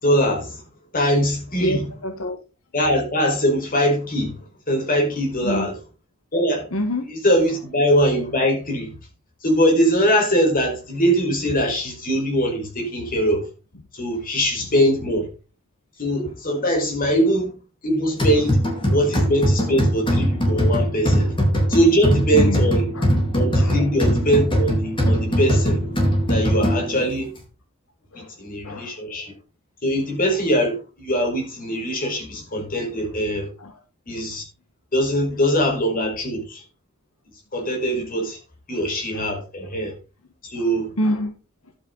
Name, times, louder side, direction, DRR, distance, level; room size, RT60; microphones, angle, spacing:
voice 1, 0.0-0.6 0.9-1.8 2.7-4.4 4.7-5.7 6.3-6.7 7.1-9.0 9.4-13.4 13.9-15.3 16.0-17.5 17.8-18.6 18.9-21.3 21.7-22.8 23.3-25.8 26.3-27.3 28.1-29.3 29.8-33.5 34.1-34.5 34.9-36.6 37.5-38.4 38.7-39.9 40.4-40.9, equal, 40° left, 5.1 m, -22 dB
voice 2, 1.6-2.4 5.4-5.7 6.7-7.1 18.9-19.0 21.1-21.2 22.3-22.7 22.9-23.0 23.6-23.8 28.1-28.3 28.6-29.0 33.6-33.8 39.1-39.3 40.6-40.7 41.0-41.3, left 1 dB, 75° left, 1.6 m, -26 dB
Barril prensado, 18.2-27.1, equal, 25° left, 4.5 m, -21 dB
11.5 x 8.8 x 4.2 m
head